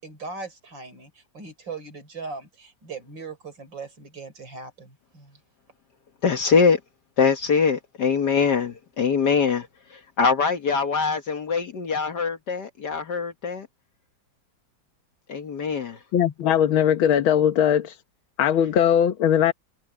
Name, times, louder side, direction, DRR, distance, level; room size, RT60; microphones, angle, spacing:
voice 1, 0.0-5.4, right 4 dB, 65° right, 5.5 m, -39 dB
voice 2, 6.2-6.8 7.2-9.7 10.2-13.7 15.3-16.0, left 5 dB, 60° left, 1.8 m, -23 dB
voice 3, 16.1-18.0 18.4-19.5, left 9 dB, 80° left, 1.9 m, -20 dB
open air
omnidirectional pair, 2.2 m